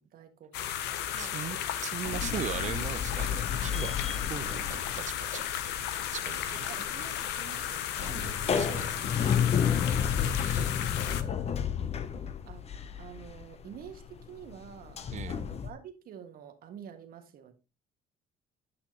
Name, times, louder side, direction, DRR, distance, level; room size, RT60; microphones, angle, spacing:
voice 1, 0.1-1.3 2.0-2.1 6.7-8.2 10.5-11.0 12.5-12.7 13.0-15.0 15.3-17.5, right 8 dB, 60° right, 1.6 m, -48 dB
sound 1, 0.5-11.2, left 10 dB, 90° left, 0.8 m, -34 dB
voice 2, 1.2-4.0 4.3-5.8 6.1-6.8 8.0-9.2 10.3-10.7 15.1-15.4, right 10 dB, 45° right, 0.6 m, -40 dB
sound 2, 2.0-5.8 6.1-15.7, left 8 dB, 40° left, 0.8 m, -32 dB
10.0 x 5.8 x 3.0 m
cardioid pair, 110°, 17 cm